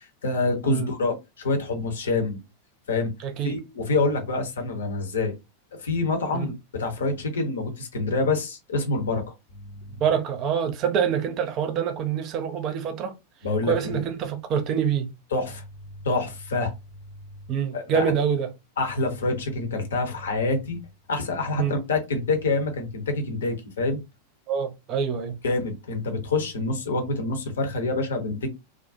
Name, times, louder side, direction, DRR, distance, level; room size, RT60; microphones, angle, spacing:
voice 1, 0.0-2.4 2.9-3.1 3.4-5.3 5.8-9.3 13.4-14.0 15.3-15.6 16.0-16.7 17.7-18.1 18.8-20.8 21.1-24.0 25.4-28.5, left 3 dB, 65° left, 0.7 m, -26 dB
voice 2, 3.2-3.5 6.3-6.5 9.9-13.1 13.7-15.1 17.5-18.5 21.6-21.8 24.5-25.4, right 7 dB, 35° right, 0.5 m, -26 dB
2.3 x 2.1 x 2.5 m
figure-of-eight pair, 90°, 0 cm